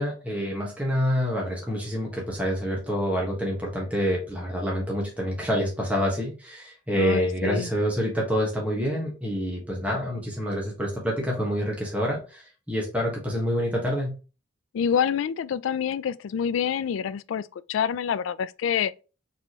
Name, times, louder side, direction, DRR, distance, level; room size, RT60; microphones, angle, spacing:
voice 1, 0.0-14.1, equal, 5° right, 1.2 m, -27 dB
voice 2, 6.9-7.7 14.7-18.9, left 7 dB, 85° left, 0.3 m, -27 dB
4.2 x 3.5 x 3.0 m
head